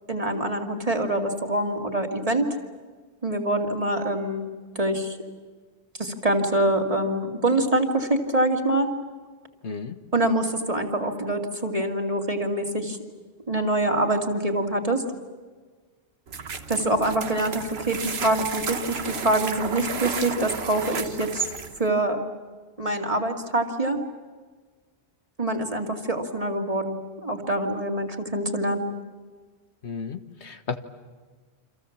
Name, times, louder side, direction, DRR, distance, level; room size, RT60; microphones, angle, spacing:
voice 1, 0.1-2.5 3.2-4.5 4.7-5.2 6.0-8.9 10.1-13.0 13.5-15.0 16.7-21.5 21.8-22.2 22.8-24.0 25.4-28.8, right 1 dB, 35° right, 3 dB, 2.5 m, -25 dB
voice 2, 9.6-10.0 29.8-30.8, left 5 dB, 80° left, 8 dB, 1.7 m, -33 dB
sound 1, 16.3-21.9, right 5 dB, 65° right, 1.4 m, -33 dB
29.0 x 26.0 x 7.3 m, 1.4 s
omnidirectional pair, 1.1 m